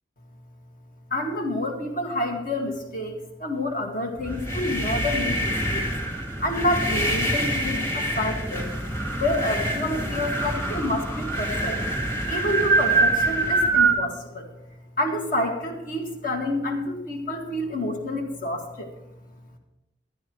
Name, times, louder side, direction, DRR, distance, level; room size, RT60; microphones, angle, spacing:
voice 1, 1.1-5.9 6.4-8.7 9.2-11.8 12.3-14.5 15.0-18.9, left 1 dB, 50° left, 2 dB, 2.0 m, -28 dB
sound 1, 4.2-14.0, right 2 dB, 15° left, 2.0 m, -25 dB
12.5 x 10.5 x 4.6 m, 0.88 s
head